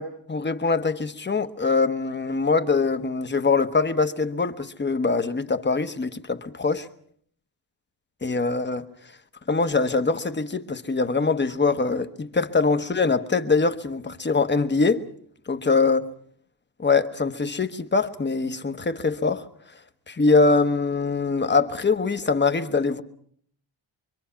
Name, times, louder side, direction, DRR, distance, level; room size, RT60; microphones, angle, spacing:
voice 1, 0.0-6.9 8.2-8.9 9.5-15.0 15.5-16.0 16.8-19.4 20.1-23.0, left 4 dB, 25° left, 1.1 m, -23 dB
25.0 x 24.5 x 5.8 m
wide cardioid pair, 155°, 45 cm